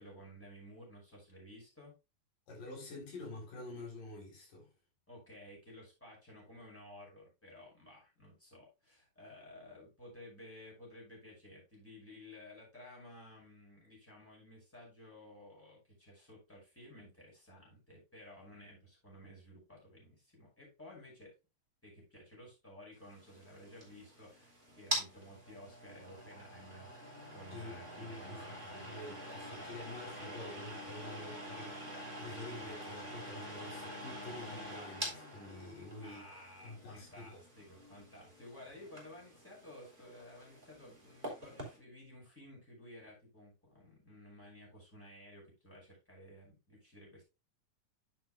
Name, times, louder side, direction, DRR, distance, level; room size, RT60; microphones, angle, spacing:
voice 1, 0.0-1.9 5.1-21.3 21.8-28.9 36.0-47.2, left 1 dB, 5° left, 5.3 m, -54 dB
voice 2, 2.5-4.7 27.5-36.3 36.6-37.4, left 2 dB, 90° left, 5.5 m, -48 dB
sound 1, 23.1-41.8, equal, 15° right, 3.7 m, -45 dB
10.5 x 7.6 x 2.4 m
omnidirectional pair, 3.7 m